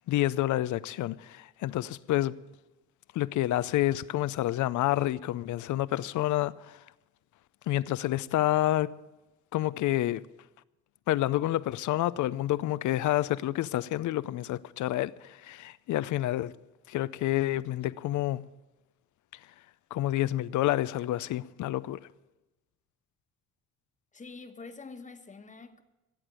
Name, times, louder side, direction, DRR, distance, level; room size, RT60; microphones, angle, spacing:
voice 1, 0.1-2.4 3.1-6.8 7.7-8.9 9.5-10.3 11.1-16.5 16.9-18.5 19.9-22.0, left 14 dB, 75° left, 0.6 m, -28 dB
voice 2, 24.1-25.8, left 4 dB, 25° left, 1.3 m, -46 dB
16.5 x 8.1 x 9.0 m
cardioid pair, 90°, 30 cm